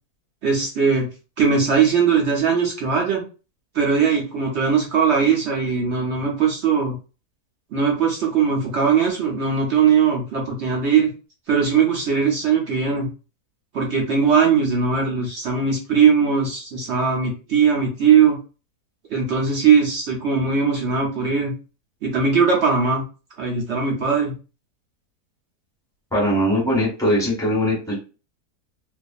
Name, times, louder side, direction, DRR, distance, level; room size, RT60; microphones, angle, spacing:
voice 1, 0.4-1.1 1.4-3.2 3.7-7.0 7.7-11.1 11.5-13.1 13.7-18.4 19.1-21.5 22.0-23.0 23.4-24.3, right 6 dB, 60° right, -1 dB, 0.8 m, -19 dB
voice 2, 26.1-28.0, equal, ahead, -4 dB, 1.1 m, -20 dB
2.4 x 2.4 x 2.3 m, 0.33 s
omnidirectional pair, 1.6 m